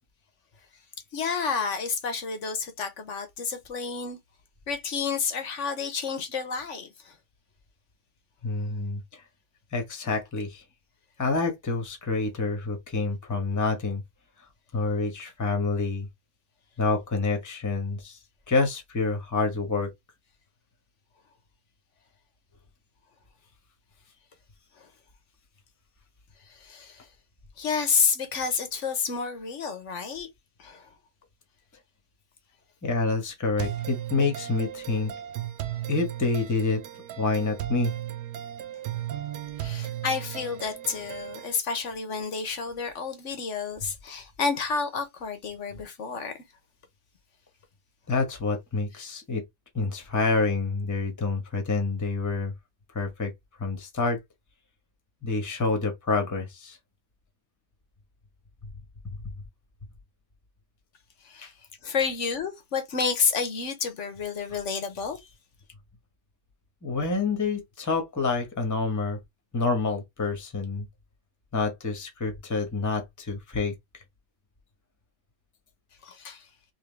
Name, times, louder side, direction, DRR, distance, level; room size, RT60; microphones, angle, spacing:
voice 1, 1.1-4.2 4.7-7.1 26.6-27.0 27.6-30.3 30.6-30.9 39.6-46.3 61.2-61.5 61.8-65.2 76.0-76.4, left 5 dB, 50° left, 1.1 m, -30 dB
voice 2, 8.4-9.2 9.7-10.6 11.2-14.0 14.7-16.1 16.8-18.2 18.5-19.9 32.8-35.1 35.9-36.8 37.2-37.9 48.1-49.4 49.7-52.5 52.9-53.3 53.6-54.2 55.2-56.8 61.4-61.5 66.8-69.2 69.5-70.9 71.5-73.7, left 3 dB, 10° left, 1.0 m, -27 dB
sound 1, 33.6-41.6, right 12 dB, 85° right, 1.3 m, -36 dB
3.7 x 3.1 x 3.3 m
omnidirectional pair, 1.8 m